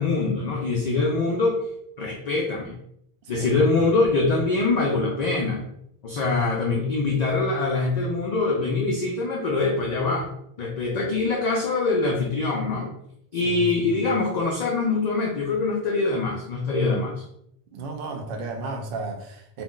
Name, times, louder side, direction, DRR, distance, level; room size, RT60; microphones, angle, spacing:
voice 1, 0.0-1.6 2.0-2.7 3.3-5.6 6.0-10.3 10.6-12.9 13.3-17.2, left 3 dB, 55° left, -1 dB, 0.5 m, -24 dB
voice 2, 17.7-19.6, right 3 dB, 60° right, 4 dB, 0.7 m, -33 dB
2.5 x 2.1 x 3.6 m, 0.73 s
omnidirectional pair, 1.1 m